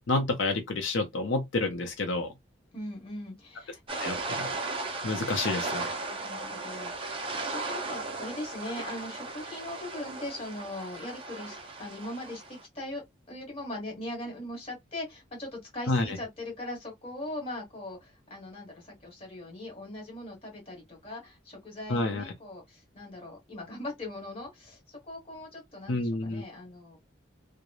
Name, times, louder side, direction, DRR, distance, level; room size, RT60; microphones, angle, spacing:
voice 1, 0.1-2.3 4.0-4.5 5.0-5.9 15.9-16.2 21.9-22.2 25.9-26.4, left 2 dB, 75° left, 0.5 m, -29 dB
voice 2, 2.7-3.8 6.1-13.0 13.3-27.0, left 1 dB, 30° left, 1.4 m, -40 dB
sound 1, 3.9-12.6, right 3 dB, 25° right, 0.4 m, -36 dB
3.0 x 2.0 x 2.3 m
head